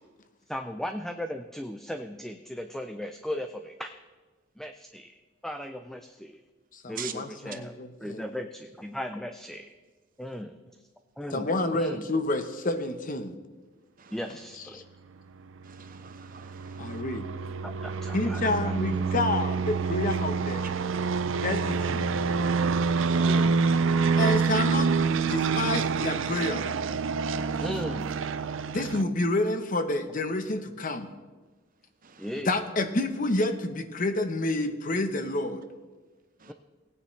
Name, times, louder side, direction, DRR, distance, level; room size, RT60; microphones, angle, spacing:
voice 1, 0.5-3.9 4.6-5.1 5.4-6.4 6.9-7.7 8.0-8.5 8.8-9.6 10.2-10.6 11.2-11.5 11.7-12.0 14.1-14.8 17.6-17.7 18.0-18.7 23.2-23.5 27.6-28.2 32.2-32.5 36.5-36.6, equal, ahead, 6 dB, 0.4 m, -36 dB
voice 2, 6.7-8.3 11.3-13.3 14.6-14.8 16.8-17.3 18.1-20.6 21.4-22.1 24.2-24.9 25.3-26.7 28.7-31.1 32.4-35.6, left 2 dB, 40° left, 8 dB, 0.8 m, -29 dB
voice 3, 15.7-16.9 23.0-23.3 32.2-32.3 36.4-36.5, right 9 dB, 45° right, 8 dB, 0.8 m, -43 dB
sound 1, 15.7-29.0, right 5 dB, 70° right, 0.5 m, -27 dB
18.0 x 9.4 x 3.2 m, 1.3 s
head